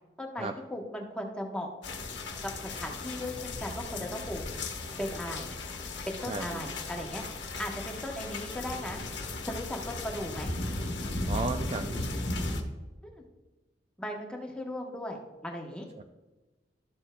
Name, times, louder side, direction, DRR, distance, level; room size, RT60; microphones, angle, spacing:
voice 1, 0.2-1.7 2.4-2.5 2.8-4.4 5.0-5.5 6.1-7.2 7.6-9.0 9.5-10.5 13.0-13.2 14.0-15.9, left 1 dB, 5° left, 0 dB, 1.0 m, -37 dB
sound 1, 1.8-12.6, left 2 dB, 80° left, 1.0 m, -36 dB
voice 2, 6.3-6.7 11.3-12.1 16.0-16.1, right 3 dB, 35° right, 6 dB, 0.3 m, -35 dB
12.5 x 7.1 x 2.2 m, 1.2 s
head